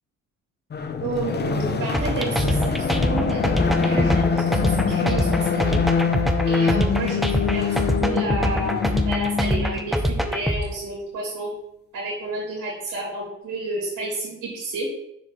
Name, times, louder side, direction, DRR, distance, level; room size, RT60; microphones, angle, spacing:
sound 1, 0.7-9.9, left 5 dB, 35° left, 0.7 m, -24 dB
voice 1, 1.0-5.8 6.5-7.7 8.0-11.5 11.9-14.9, right 2 dB, 85° right, -4 dB, 2.8 m, -30 dB
sound 2, 1.9-10.6, equal, ahead, 0.7 m, -24 dB
6.7 x 4.9 x 3.8 m, 0.78 s
cardioid pair, 90°, 30 cm